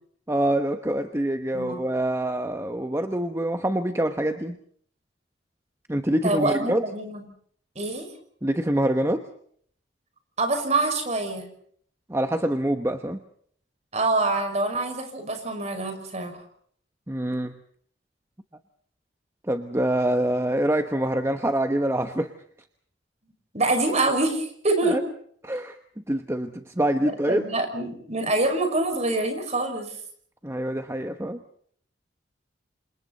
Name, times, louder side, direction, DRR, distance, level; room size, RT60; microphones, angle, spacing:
voice 1, 0.3-4.6 5.9-6.8 8.4-9.2 12.1-13.2 17.1-17.6 19.5-22.3 24.8-25.0 25.4-27.4 30.4-31.4, right 1 dB, 15° right, 7 dB, 1.1 m, -25 dB
voice 2, 6.2-7.2 7.8-8.1 10.4-11.5 13.9-16.4 23.5-25.0 27.0-30.0, right 2 dB, 35° right, 5 dB, 5.9 m, -25 dB
29.5 x 27.0 x 4.2 m, 0.62 s
head